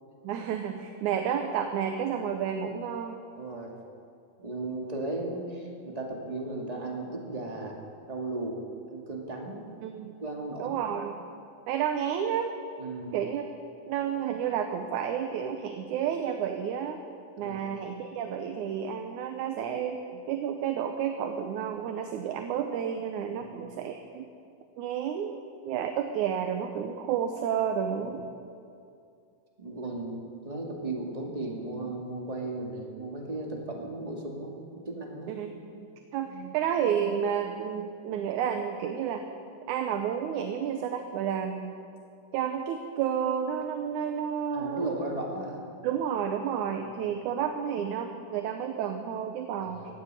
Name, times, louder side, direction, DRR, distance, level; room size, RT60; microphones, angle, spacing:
voice 1, 0.2-3.2 9.8-10.2 10.6-11.2 11.7-12.5 13.1-13.5 13.9-17.0 17.4-24.3 24.8-25.4 25.6-28.3 35.3-39.3 39.7-41.8 42.3-44.9 45.8-49.9, right 8 dB, 70° right, 6 dB, 2.1 m, -31 dB
voice 2, 3.4-3.7 4.4-7.8 8.1-8.6 8.9-9.6 10.2-10.8 12.8-13.2 17.4-17.6 23.3-23.6 28.1-28.2 29.6-35.4 44.5-45.6 46.8-46.9 49.6-49.9, right 2 dB, 15° right, 0 dB, 1.3 m, -36 dB
16.0 x 9.8 x 9.1 m, 2.5 s
omnidirectional pair, 3.9 m